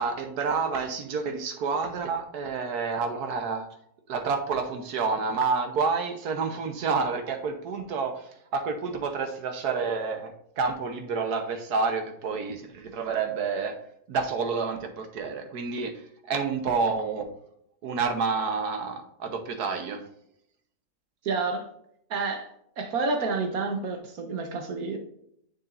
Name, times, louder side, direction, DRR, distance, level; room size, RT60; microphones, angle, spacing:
voice 1, 0.0-3.7 4.1-13.7 14.1-16.0 16.3-17.3 17.8-20.0, right 4 dB, 85° right, 6 dB, 1.5 m, -29 dB
voice 2, 21.2-21.7 22.1-22.5 22.8-25.0, right 4 dB, 70° right, 4 dB, 1.6 m, -29 dB
7.1 x 6.9 x 2.5 m, 0.72 s
omnidirectional pair, 1.6 m